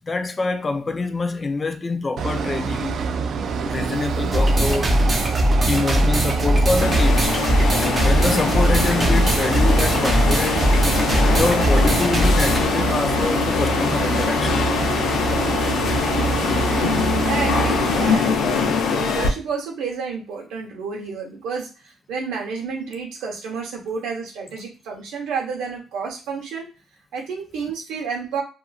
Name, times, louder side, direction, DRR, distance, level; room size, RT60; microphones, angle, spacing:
voice 1, 0.0-3.0 3.6-5.0 5.7-7.4 7.8-10.7 11.3-14.7, left 3 dB, 30° left, 0.4 m, -25 dB
sound 1, 2.2-18.2, right 5 dB, 65° right, 0.3 m, -26 dB
sound 2, 4.3-12.7, equal, 30° right, 0.7 m, -20 dB
sound 3, 6.8-19.3, left 5 dB, 80° left, 0.5 m, -23 dB
voice 2, 16.7-26.7 27.1-28.4, right 5 dB, 90° right, 1.0 m, -30 dB
2.7 x 2.5 x 2.4 m
cardioid pair, 90°, 0 cm